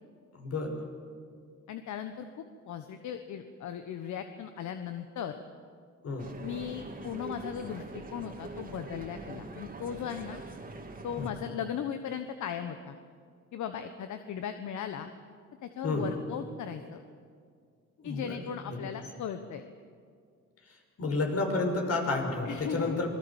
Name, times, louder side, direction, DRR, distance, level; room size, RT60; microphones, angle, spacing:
voice 1, 0.3-0.8 6.0-6.3 11.2-11.3 15.8-16.1 18.0-18.4 18.7-18.9 21.0-23.1, left 3 dB, 55° left, 2 dB, 6.1 m, -30 dB
voice 2, 1.7-5.4 6.4-10.4 11.0-13.0 13.5-15.1 15.6-17.0 18.0-19.6 22.4-23.0, left 8 dB, 70° left, 8 dB, 1.3 m, -37 dB
sound 1, 6.2-11.3, right 2 dB, 30° right, 2.9 m, -43 dB
27.0 x 21.5 x 7.3 m, 2.2 s
cardioid pair, 90°, 30 cm